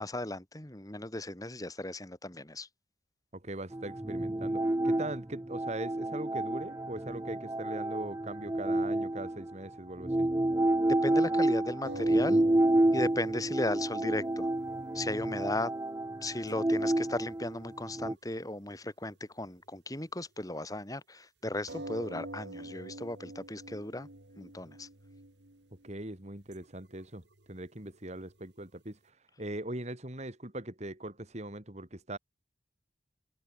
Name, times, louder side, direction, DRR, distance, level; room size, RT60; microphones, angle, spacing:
voice 1, 0.0-2.7 10.8-12.4 12.9-14.5 14.9-15.7 16.2-24.1 24.4-24.9, left 1 dB, 20° left, 3.2 m, -36 dB
voice 2, 3.3-10.3 25.8-27.2 27.5-29.0 29.4-32.2, right 1 dB, 40° right, 3.5 m, -40 dB
sound 1, 3.7-9.5 10.0-18.1, right 1 dB, 15° right, 0.5 m, -29 dB
sound 2, 11.8-18.1 19.2-19.3 21.7-28.8, right 2 dB, 90° right, 2.6 m, -47 dB
head